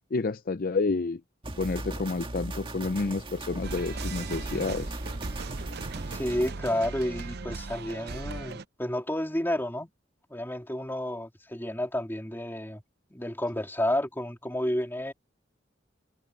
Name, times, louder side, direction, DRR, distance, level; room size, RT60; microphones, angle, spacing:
voice 1, 0.1-1.2 1.6-5.0, left 3 dB, 50° left, 0.5 m, -29 dB
sound 1, 1.4-6.5, right 1 dB, 30° right, 1.8 m, -38 dB
sound 2, 3.6-8.6, right 3 dB, 60° right, 0.7 m, -38 dB
voice 2, 6.1-9.9 10.3-12.8 13.1-15.1, left 1 dB, 10° left, 3.3 m, -31 dB
head